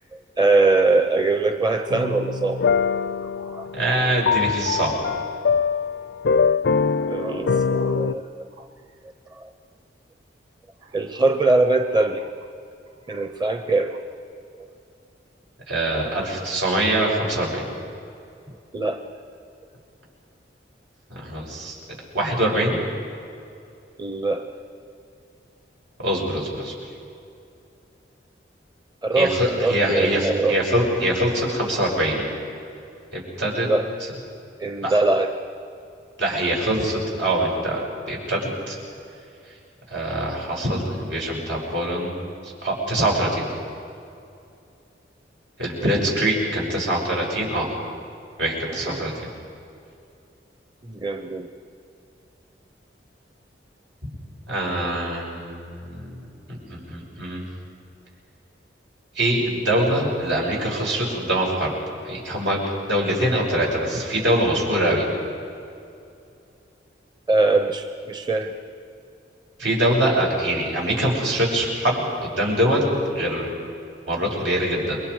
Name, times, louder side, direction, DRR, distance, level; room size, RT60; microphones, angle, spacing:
voice 1, 0.4-2.6 3.4-3.7 7.0-8.7 9.4-9.5 10.9-12.3 13.1-14.0 18.7-19.0 24.0-24.5 29.0-30.6 33.6-33.9 34.6-35.3 45.8-45.9 48.7-49.1 50.9-51.5 67.3-68.5, right 3 dB, 25° right, 6 dB, 0.8 m, -22 dB
sound 1, 1.9-8.1, left 5 dB, 70° left, 0.4 m, -23 dB
voice 2, 3.7-4.9 15.7-17.7 21.1-21.7 22.1-22.8 26.0-26.7 29.1-32.3 33.1-33.7 34.8-35.0 36.2-38.8 39.9-42.2 42.4-43.5 45.6-47.7 48.4-49.1 54.5-56.1 56.7-57.5 59.1-61.7 62.0-62.6 62.9-65.1 69.6-73.5 74.1-75.0, right 1 dB, 85° right, -2 dB, 6.4 m, -23 dB
29.0 x 23.0 x 4.9 m, 2.5 s
head